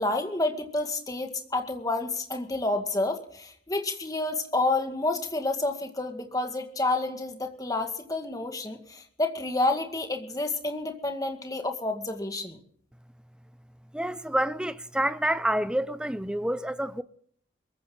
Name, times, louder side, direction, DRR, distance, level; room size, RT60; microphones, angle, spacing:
voice 1, 0.0-12.6, left 2 dB, 20° left, 2.0 m, -29 dB
voice 2, 13.9-17.0, right 1 dB, 5° right, 0.6 m, -28 dB
22.5 x 14.5 x 3.9 m
head